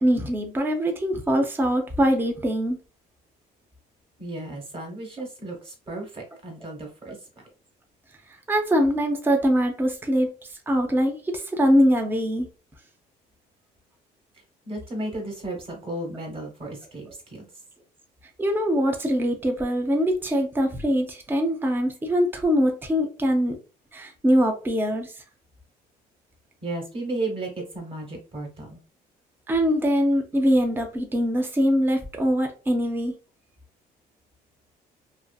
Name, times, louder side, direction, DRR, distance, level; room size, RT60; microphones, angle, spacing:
voice 1, 0.0-2.8 8.5-10.3 10.7-12.5 18.4-23.6 23.9-25.1 29.5-33.1, equal, 10° right, 0.5 m, -23 dB
voice 2, 4.2-7.2 14.6-17.5 26.6-28.8, right 2 dB, 35° right, 1.2 m, -34 dB
2.6 x 2.5 x 2.3 m
cardioid pair, 110°, 17 cm